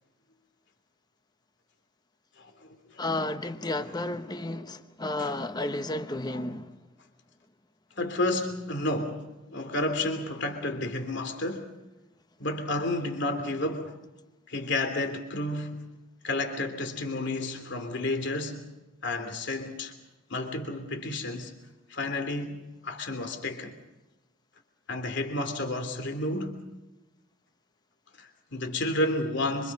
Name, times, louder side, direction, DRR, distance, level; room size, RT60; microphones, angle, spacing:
voice 1, 2.4-3.0 6.3-6.4 8.0-11.7 12.4-14.0 14.5-15.9 16.2-18.7 19.0-19.9 20.3-21.5 21.9-23.7 24.9-26.6 28.2-29.7, left 2 dB, 60° left, 3.0 m, -31 dB
voice 2, 3.0-6.9, left 2 dB, 20° left, 1.1 m, -32 dB
26.5 x 26.0 x 5.4 m
head